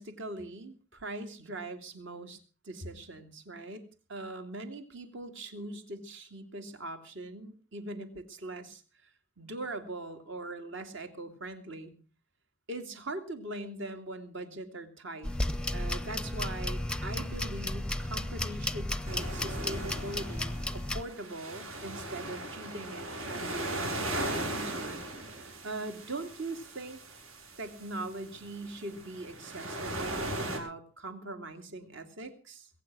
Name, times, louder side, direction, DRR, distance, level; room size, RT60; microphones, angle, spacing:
voice 1, 0.0-2.4 2.6-3.8 4.1-9.1 9.4-11.9 12.7-15.3 15.7-27.0 27.6-32.7, right 2 dB, 60° right, 7 dB, 2.6 m, -41 dB
sound 1, 15.2-21.0, left 1 dB, 5° left, 0.7 m, -34 dB
sound 2, 19.0-30.6, right 1 dB, 75° right, 6.0 m, -38 dB
22.0 x 9.2 x 6.2 m, 0.38 s
head